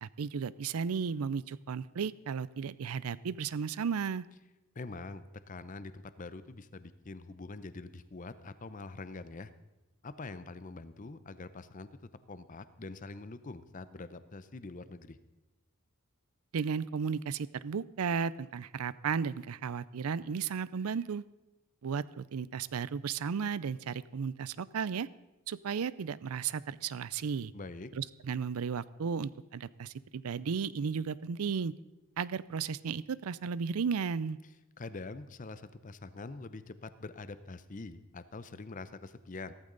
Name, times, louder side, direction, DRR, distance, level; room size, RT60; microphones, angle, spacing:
voice 1, 0.0-4.2 16.5-21.2 21.8-25.1 25.5-27.5 27.9-31.7 32.2-34.4, right 6 dB, 85° right, 19 dB, 0.5 m, -34 dB
voice 2, 4.7-9.5 10.0-11.9 12.3-15.2 27.5-27.9 34.8-39.5, left 3 dB, 35° left, 13 dB, 0.6 m, -44 dB
15.5 x 14.0 x 3.9 m, 1.0 s
head